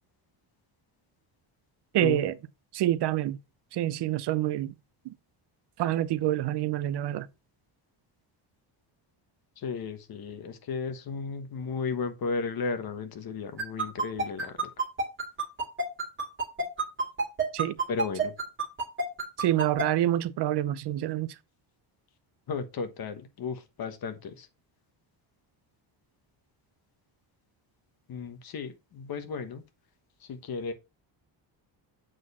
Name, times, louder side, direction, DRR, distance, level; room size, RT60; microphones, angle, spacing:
voice 1, 1.9-2.3 2.7-3.4 3.7-4.7 5.0-5.1 5.8-7.3 17.5-17.8 19.4-21.4, right 13 dB, 60° right, 0.6 m, -27 dB
voice 2, 9.6-14.7 17.9-18.3 22.5-24.5 28.1-29.6 30.2-30.7, left 5 dB, 50° left, 1.2 m, -34 dB
sound 1, 13.6-19.8, right 3 dB, 25° right, 2.2 m, -28 dB
7.6 x 4.4 x 4.1 m
cardioid pair, 165°, 46 cm